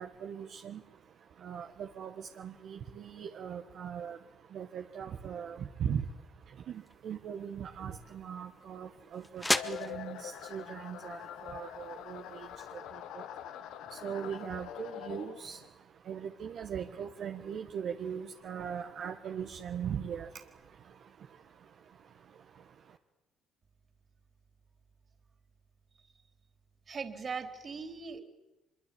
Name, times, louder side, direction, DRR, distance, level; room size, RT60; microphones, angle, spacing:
voice 1, 0.0-23.0, right 8 dB, 60° right, 4 dB, 1.6 m, -41 dB
sound 1, 6.7-12.7, left 2 dB, 15° left, 1.8 m, -39 dB
sound 2, 9.5-15.7, left 10 dB, 80° left, 1.3 m, -44 dB
voice 2, 26.9-28.2, right 5 dB, 40° right, 9 dB, 3.7 m, -39 dB
24.5 x 22.5 x 8.7 m, 0.99 s
supercardioid pair, 75°, 0 cm